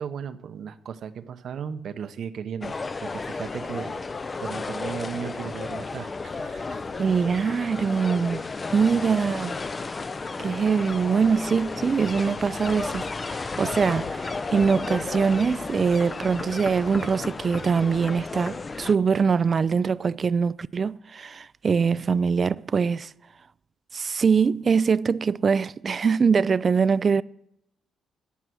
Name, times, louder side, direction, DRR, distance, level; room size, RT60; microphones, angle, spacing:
voice 1, 0.0-4.0 4.4-7.3 8.0-8.1 8.8-9.1, right 7 dB, 65° right, 0.7 m, -36 dB
sound 1, 2.6-18.9, left 4 dB, 30° left, 0.5 m, -33 dB
voice 2, 7.0-8.4 8.7-9.6 10.4-23.1 23.9-27.2, right 5 dB, 40° right, 0.3 m, -23 dB
14.0 x 5.6 x 6.2 m
cardioid pair, 90°, 0 cm